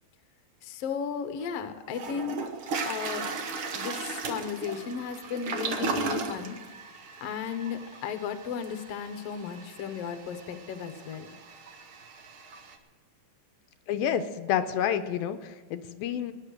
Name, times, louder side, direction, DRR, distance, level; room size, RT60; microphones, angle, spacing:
voice 1, 0.6-2.4 2.8-3.3 3.7-6.6 7.2-11.3, left 7 dB, 60° left, 8 dB, 1.6 m, -35 dB
Toilet flush, 1.4-1.5 1.9-12.7, right 4 dB, 70° right, 1.2 m, -37 dB
voice 2, 13.9-16.3, left 9 dB, 85° left, 9 dB, 2.5 m, -29 dB
18.0 x 10.0 x 6.5 m, 1.4 s
omnidirectional pair, 4.3 m